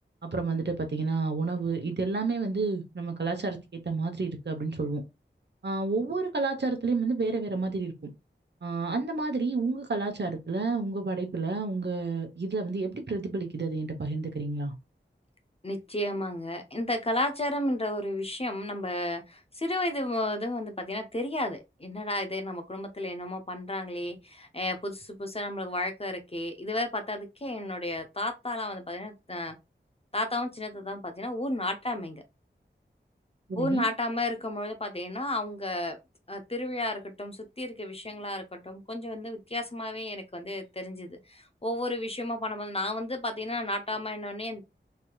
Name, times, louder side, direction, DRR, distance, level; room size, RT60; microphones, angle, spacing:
voice 1, 0.2-5.0 5.6-7.9 8.6-14.7 33.5-33.9, right 3 dB, 60° right, 0.9 m, -30 dB
voice 2, 15.6-29.6 30.1-32.2 33.6-36.0 36.3-44.6, left 1 dB, 30° left, 0.8 m, -32 dB
3.3 x 2.8 x 2.4 m
wide cardioid pair, 40°, 20 cm